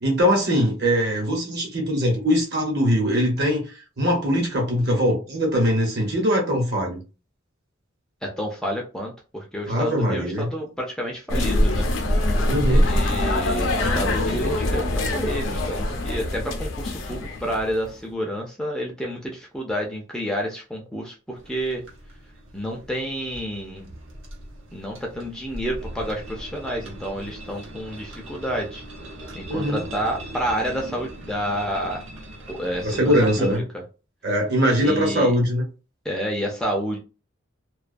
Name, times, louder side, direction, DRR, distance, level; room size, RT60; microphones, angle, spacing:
voice 1, 0.0-7.0 9.7-10.5 12.5-12.9 29.5-29.8 32.8-33.6 34.2-35.6, equal, 55° right, 1.0 m, -22 dB
voice 2, 8.2-11.9 12.7-21.8 22.5-23.9 24.7-28.8 29.4-32.0 32.5-33.6 34.8-35.3 36.0-37.0, equal, 5° left, 0.4 m, -29 dB
sound 1, 11.3-17.9, left 1 dB, 70° left, 0.5 m, -23 dB
sound 2, 21.4-33.6, right 1 dB, 75° right, 0.8 m, -40 dB
2.3 x 2.3 x 2.5 m
head